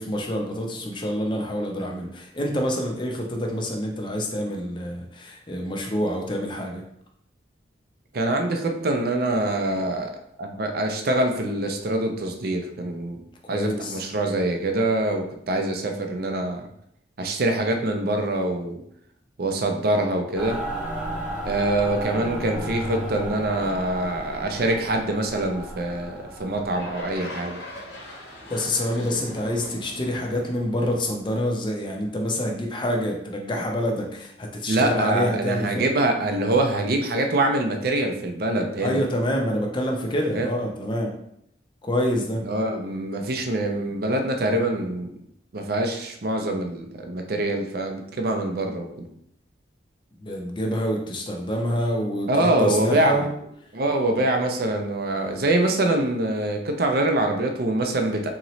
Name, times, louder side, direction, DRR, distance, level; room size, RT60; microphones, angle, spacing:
voice 1, 0.0-6.8 13.4-14.0 28.5-35.9 38.8-41.1 41.8-42.4 50.2-53.3, equal, 25° left, 1 dB, 0.6 m, -27 dB
voice 2, 8.1-10.1 10.4-13.2 13.5-16.6 17.2-18.8 19.4-20.6 21.4-27.6 34.7-39.0 40.3-40.5 42.4-45.1 45.5-49.1 52.3-53.2 53.7-58.3, right 2 dB, 55° right, 4 dB, 0.5 m, -24 dB
Mechanical fan, 20.4-27.2, right 1 dB, 5° right, 0.8 m, -33 dB
sound 1, 26.7-32.0, left 1 dB, 75° left, 1.1 m, -40 dB
3.9 x 3.0 x 3.0 m, 0.73 s
head